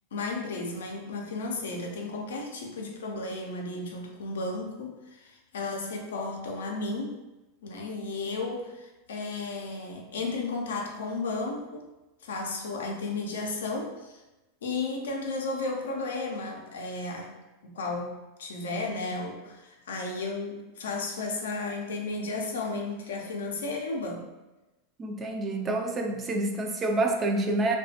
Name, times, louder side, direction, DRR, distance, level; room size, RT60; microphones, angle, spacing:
voice 1, 0.1-7.2 7.6-11.9 12.2-14.2 14.6-17.3 17.6-24.3, left 3 dB, 80° left, 1 dB, 0.5 m, -34 dB
voice 2, 25.0-27.8, right 2 dB, 25° right, 3 dB, 0.4 m, -28 dB
2.3 x 2.2 x 2.7 m, 1.0 s
hypercardioid pair, 100°, 0 cm